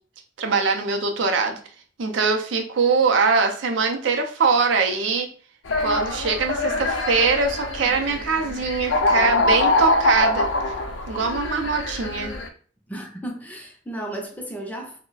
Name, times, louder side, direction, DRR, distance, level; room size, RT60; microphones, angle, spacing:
voice 1, 0.4-1.6 2.0-5.3 5.8-10.5 11.1-12.3, right 4 dB, 70° right, 0.5 m, -22 dB
sound 1, 5.7-12.5, left 2 dB, 70° left, 0.5 m, -24 dB
voice 2, 12.9-15.0, right 1 dB, 10° left, 0.5 m, -34 dB
2.3 x 2.1 x 3.8 m
head